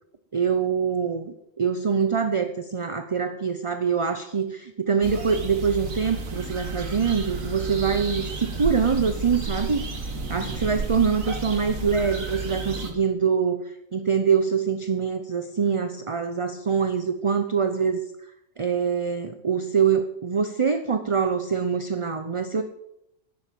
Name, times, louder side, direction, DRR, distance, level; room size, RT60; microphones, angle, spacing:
voice 1, 0.3-9.8 10.3-13.6 13.9-18.0 18.6-22.6, right 6 dB, 30° right, 8 dB, 0.7 m, -24 dB
sound 1, 5.0-12.9, right 3 dB, 85° right, 2.1 m, -32 dB
11.0 x 10.0 x 7.5 m, 0.80 s
omnidirectional pair, 1.4 m